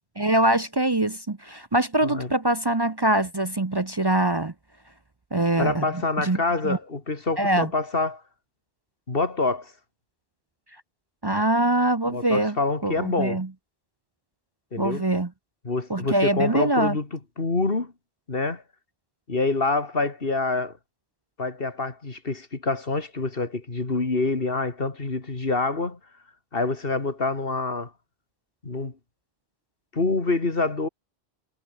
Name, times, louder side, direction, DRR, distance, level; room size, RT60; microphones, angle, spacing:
voice 1, 0.0-4.5 5.3-6.4 6.6-6.8 7.4-7.7 11.2-13.5 14.8-15.3 15.9-17.0, right 1 dB, 25° right, 0.8 m, -23 dB
voice 2, 5.6-8.2 9.1-9.7 12.1-13.4 14.7-15.0 15.6-17.1 17.4-17.9 18.3-18.6 19.3-20.8 21.4-26.0 26.5-27.9 28.6-28.9 29.9-30.9, left 3 dB, 60° left, 2.8 m, -26 dB
omnidirectional pair, 1.1 m